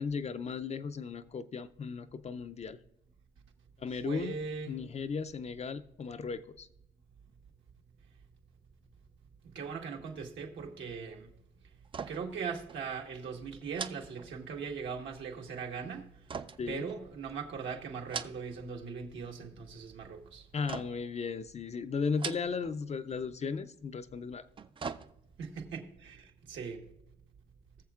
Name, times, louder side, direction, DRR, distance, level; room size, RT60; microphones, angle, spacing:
voice 1, 0.0-2.8 3.8-4.4 4.7-6.7 16.6-16.9 20.5-24.5, left 5 dB, 35° left, 0.4 m, -36 dB
voice 2, 4.0-4.7 9.4-11.3 12.1-16.0 16.7-20.4 25.4-26.8, right 5 dB, 75° right, 1.4 m, -40 dB
sound 1, 11.8-12.4 12.7-12.9 13.7-14.8 16.3-17.4 17.9-18.7 19.0-19.6 20.7-21.2 22.1-22.8 23.1-23.2 24.3-25.5 25.9-26.0, right 6 dB, 25° right, 0.3 m, -42 dB
20.0 x 7.0 x 2.4 m
cardioid pair, 90°, 20 cm